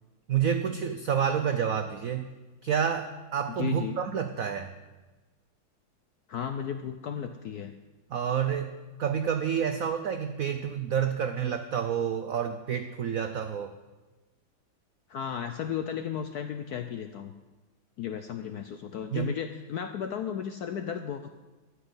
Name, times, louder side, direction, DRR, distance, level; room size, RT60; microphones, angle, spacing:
voice 1, 0.3-2.3 2.6-4.7 8.1-8.7 9.0-13.7 19.1-19.4, right 8 dB, 85° right, 8 dB, 0.7 m, -29 dB
voice 2, 3.6-4.0 6.3-7.7 15.1-17.3 18.0-21.3, left 8 dB, 75° left, 8 dB, 0.9 m, -34 dB
12.5 x 6.1 x 9.6 m, 1.2 s
omnidirectional pair, 2.3 m